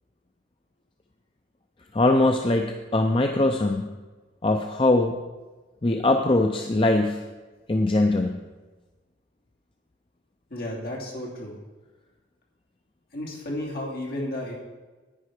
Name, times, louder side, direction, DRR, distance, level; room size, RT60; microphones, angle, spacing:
voice 1, 1.9-3.9 4.4-5.2 5.8-7.2 7.7-8.4, left 2 dB, 30° left, 4 dB, 0.5 m, -22 dB
voice 2, 10.5-11.6 13.1-14.5, left 1 dB, 55° left, -2 dB, 2.7 m, -33 dB
10.0 x 9.5 x 4.9 m, 1.2 s
head